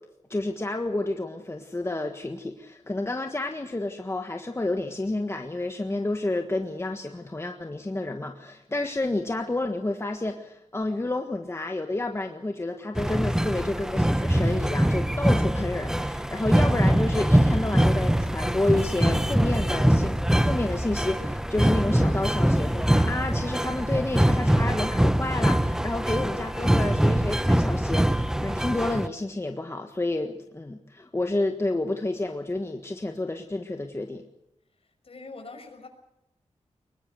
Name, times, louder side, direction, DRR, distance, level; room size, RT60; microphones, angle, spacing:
voice 1, 0.3-34.2, left 2 dB, 20° left, 5 dB, 1.6 m, -30 dB
sound 1, 12.9-29.1, equal, 5° right, 0.8 m, -23 dB
voice 2, 34.8-35.9, left 3 dB, 50° left, 5 dB, 5.9 m, -44 dB
23.5 x 21.5 x 6.5 m, 0.85 s
wide cardioid pair, 135°, 12 cm